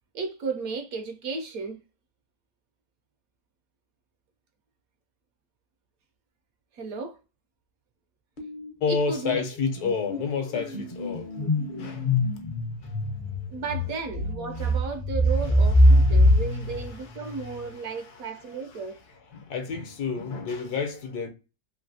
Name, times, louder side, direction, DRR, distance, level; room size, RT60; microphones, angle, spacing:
voice 1, 0.1-1.8 6.7-7.2 8.9-9.4 13.5-19.0, right 4 dB, 70° right, 0.9 m, -34 dB
sound 1, 8.4-8.7 9.0-17.7, equal, 50° left, 0.6 m, -24 dB
voice 2, 8.8-12.2 12.8-13.1 14.6-14.7 15.6-16.4 17.4-18.0 19.3-21.3, left 5 dB, 75° left, 1.2 m, -31 dB
3.2 x 2.6 x 2.5 m
omnidirectional pair, 1.7 m